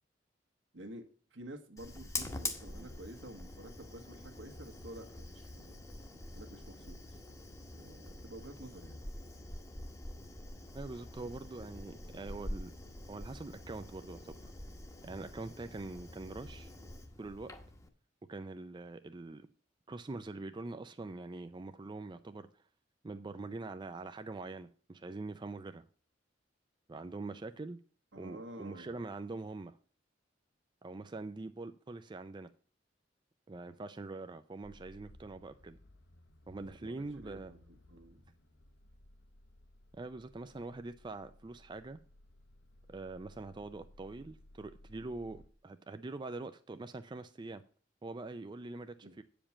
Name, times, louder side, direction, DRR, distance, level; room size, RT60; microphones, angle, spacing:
voice 1, 0.7-5.8 6.3-7.2 7.7-9.1 28.1-28.9 36.6-38.2 49.0-49.2, right 1 dB, 75° right, 5 dB, 1.5 m, -50 dB
Fire, 1.8-17.9, left 2 dB, 15° left, 1.0 m, -45 dB
voice 2, 10.7-12.7 13.1-14.4 15.0-16.7 17.2-17.5 18.3-19.5 19.9-22.5 23.0-25.8 26.9-27.8 28.2-29.8 30.8-32.5 33.5-35.8 36.5-37.5 39.9-42.0 42.9-47.6 48.0-49.2, right 3 dB, 25° right, 10 dB, 0.4 m, -44 dB
sound 1, 34.6-45.5, left 1 dB, 65° left, 0.9 m, -60 dB
8.7 x 5.1 x 7.1 m, 0.42 s
head